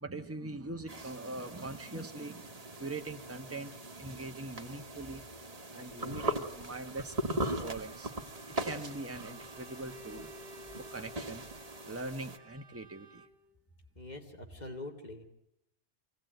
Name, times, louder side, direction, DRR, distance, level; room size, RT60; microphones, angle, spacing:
voice 1, 0.0-5.2 5.7-7.1 7.4-8.1 8.6-10.3 10.8-11.5 11.9-13.2, right 2 dB, 15° right, 6 dB, 1.1 m, -42 dB
sound 1, 0.9-12.4, right 1 dB, 35° right, 1.6 m, -40 dB
Bowed string instrument, 7.0-13.5, equal, 65° right, 2.0 m, -55 dB
voice 2, 13.9-15.3, left 2 dB, 40° left, 3 dB, 2.6 m, -44 dB
25.5 x 17.5 x 9.2 m, 0.81 s
omnidirectional pair, 1.1 m